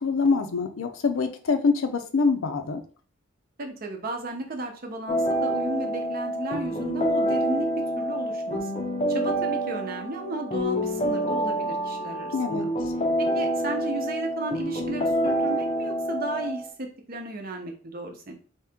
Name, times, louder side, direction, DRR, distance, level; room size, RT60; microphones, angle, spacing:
voice 1, 0.0-2.8 12.3-12.7, left 4 dB, 90° left, 7 dB, 0.6 m, -25 dB
voice 2, 3.6-8.7 9.1-12.6 13.2-18.3, right 2 dB, 45° right, 3 dB, 0.7 m, -34 dB
sound 1, 5.1-16.7, equal, 30° left, 0.5 m, -27 dB
3.0 x 2.8 x 3.5 m, 0.41 s
head